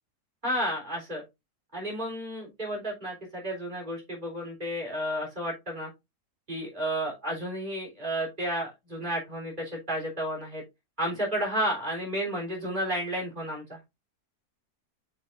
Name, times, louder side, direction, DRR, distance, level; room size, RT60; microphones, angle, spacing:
voice 1, 0.4-1.2 1.7-5.9 6.5-10.6 11.0-13.8, equal, 30° right, -1 dB, 3.5 m, -32 dB
7.9 x 6.3 x 2.5 m, 0.22 s
omnidirectional pair, 1.7 m